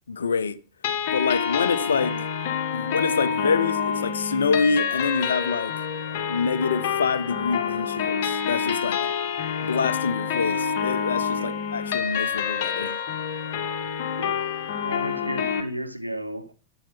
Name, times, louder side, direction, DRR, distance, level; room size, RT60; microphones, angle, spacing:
voice 1, 0.1-0.6 1.1-2.1 2.7-5.9 6.3-9.0 9.6-13.0, left 5 dB, 70° left, 0.9 m, -26 dB
sound 1, 0.8-15.6, left 7 dB, 50° left, 1.6 m, -27 dB
voice 2, 1.8-2.2 8.6-8.9 9.6-9.8 11.3-11.6 14.2-14.5 14.8-16.5, equal, 90° right, 0.9 m, -34 dB
12.0 x 8.1 x 5.8 m
figure-of-eight pair, 90°, 0 cm